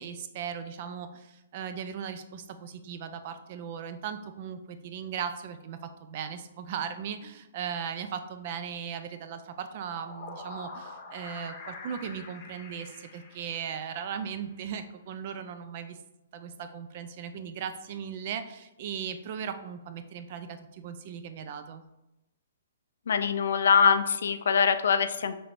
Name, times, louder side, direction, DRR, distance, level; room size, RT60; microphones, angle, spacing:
voice 1, 0.0-16.0 16.3-21.8, right 7 dB, 45° right, 9 dB, 0.3 m, -38 dB
sound 1, 9.7-14.1, left 3 dB, 30° left, 0.9 m, -45 dB
voice 2, 23.1-25.3, left 6 dB, 70° left, 10 dB, 0.3 m, -23 dB
4.3 x 3.0 x 2.6 m, 0.95 s
hypercardioid pair, 155°, 0 cm